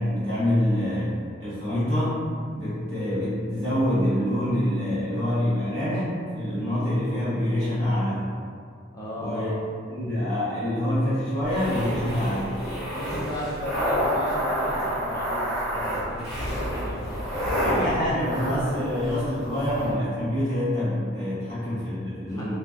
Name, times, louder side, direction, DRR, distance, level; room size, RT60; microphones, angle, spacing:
voice 1, 0.0-2.2 2.5-8.2 9.2-9.5 9.9-12.6 17.6-22.5, left 1 dB, 70° right, -11 dB, 1.1 m, -26 dB
voice 2, 8.9-9.6 12.9-17.8 21.4-21.7 22.3-22.5, left 1 dB, 15° left, -7 dB, 0.4 m, -36 dB
sound 1, 11.4-19.9, equal, ahead, 0.9 m, -29 dB
2.5 x 2.1 x 2.3 m, 2.1 s
head